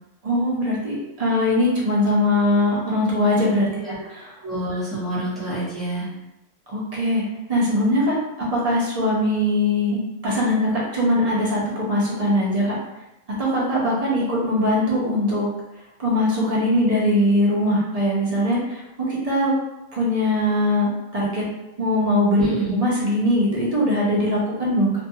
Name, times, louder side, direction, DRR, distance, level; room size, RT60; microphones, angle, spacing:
voice 1, 0.2-3.7 4.1-4.3 6.7-7.2 7.5-12.8 13.3-15.5 16.0-18.8 19.1-19.6 19.9-21.5 21.8-22.4 22.7-24.9, left 1 dB, 40° right, -5 dB, 0.6 m, -21 dB
voice 2, 3.7-4.0 4.4-6.1 22.4-22.7, right 1 dB, ahead, -10 dB, 0.9 m, -27 dB
2.5 x 2.2 x 2.6 m, 0.94 s
omnidirectional pair, 1.3 m